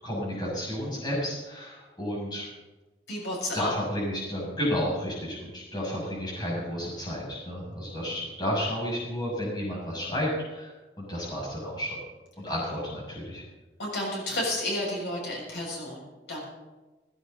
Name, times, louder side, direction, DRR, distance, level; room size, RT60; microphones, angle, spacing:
voice 1, 0.0-2.5 3.5-10.7 11.0-12.0 12.4-13.4, equal, 25° left, -5 dB, 6.7 m, -32 dB
voice 2, 3.1-3.7 13.8-16.4, left 1 dB, 85° left, -3 dB, 6.8 m, -31 dB
19.0 x 16.5 x 4.0 m, 1.2 s
head